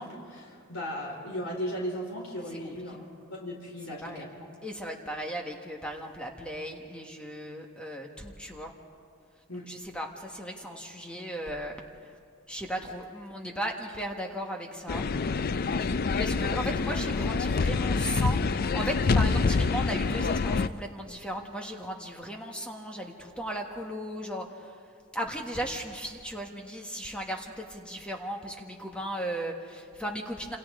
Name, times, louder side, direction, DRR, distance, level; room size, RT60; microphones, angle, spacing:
voice 1, 0.0-3.0 3.3-4.3 9.5-9.7, equal, 90° left, -2 dB, 4.5 m, -36 dB
voice 2, 4.6-8.7 9.5-11.8 12.5-15.1 15.7-24.7 25.1-30.6, equal, 5° left, 2 dB, 1.4 m, -36 dB
sound 1, 14.9-20.7, left 4 dB, 45° left, 0.4 m, -26 dB
28.0 x 27.5 x 3.7 m, 2.2 s
head